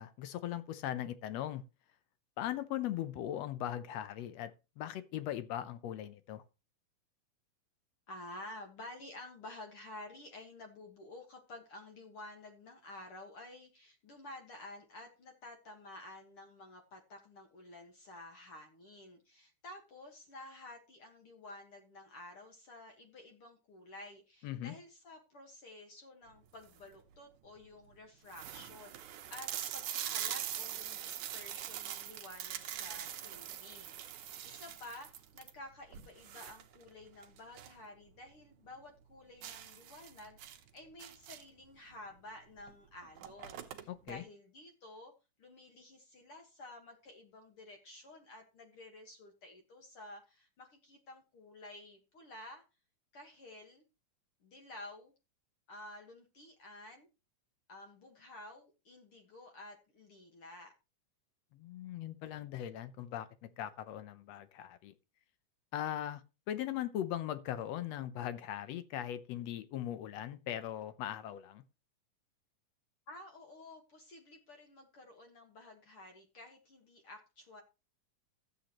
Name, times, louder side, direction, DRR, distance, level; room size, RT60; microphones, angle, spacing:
voice 1, 0.0-1.6 2.4-4.5 4.8-6.4 24.4-24.7 43.9-44.2 61.5-63.3 63.6-64.9 65.7-71.6, left 11 dB, 70° left, 1.7 m, -39 dB
voice 2, 8.1-45.1 45.4-52.6 53.1-53.8 54.4-55.1 55.7-57.1 57.7-60.7 73.1-77.6, left 2 dB, 50° left, 2.2 m, -52 dB
sound 1, 26.4-26.9 27.6-27.7 27.9-28.0 28.3-37.8 38.2-38.3 38.7-38.8 39.4-41.6 42.6-42.7 43.0-44.1, right 11 dB, 75° right, 2.4 m, -43 dB
14.5 x 8.2 x 3.0 m
omnidirectional pair, 3.6 m